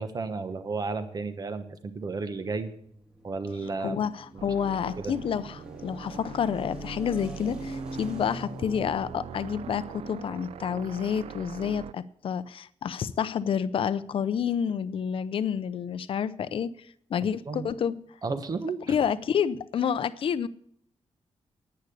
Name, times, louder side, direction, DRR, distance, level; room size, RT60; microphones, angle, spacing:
voice 1, 0.0-2.7 3.2-4.0 4.3-4.5 5.0-5.1 17.5-17.7 18.2-19.0, right 4 dB, 35° right, 1.1 m, -33 dB
sound 1, 2.6-10.2, equal, 10° right, 2.2 m, -43 dB
voice 2, 3.8-16.7 17.1-18.0 18.9-20.5, left 8 dB, 60° left, 0.6 m, -29 dB
sound 2, 4.4-11.9, right 10 dB, 75° right, 0.5 m, -43 dB
10.5 x 9.6 x 6.8 m
wide cardioid pair, 165°, 11 cm